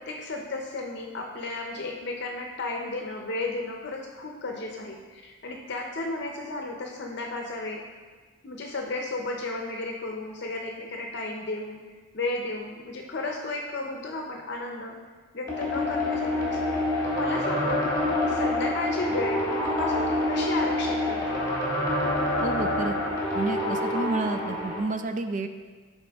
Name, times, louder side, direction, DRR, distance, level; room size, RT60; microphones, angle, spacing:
voice 1, 0.0-7.9 8.4-15.0 15.3-17.8 18.2-21.4, left 2 dB, 55° left, 1 dB, 0.7 m, -34 dB
sound 1, 15.5-24.8, left 1 dB, 15° left, 1.7 m, -27 dB
voice 2, 22.4-23.0 23.3-25.5, right 3 dB, 40° right, 8 dB, 0.4 m, -30 dB
12.0 x 4.2 x 3.5 m, 1.4 s
head